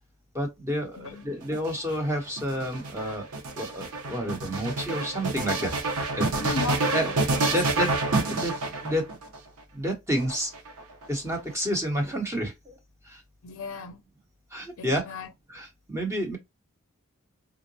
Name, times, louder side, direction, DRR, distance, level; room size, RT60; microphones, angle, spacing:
voice 1, 0.3-3.3 3.6-5.7 6.2-6.5 6.9-7.1 7.5-8.0 8.3-9.1 9.7-10.5 11.1-12.8 13.0-13.2 14.5-15.0 15.5-16.4, equal, 15° right, 0.9 m, -30 dB
voice 2, 1.0-1.3 6.4-7.6 13.4-14.0 14.8-15.3, left 5 dB, 65° left, 0.5 m, -36 dB
sound 1, 1.4-9.4 10.2-11.0, right 2 dB, 75° right, 0.7 m, -28 dB
3.8 x 2.1 x 2.6 m
head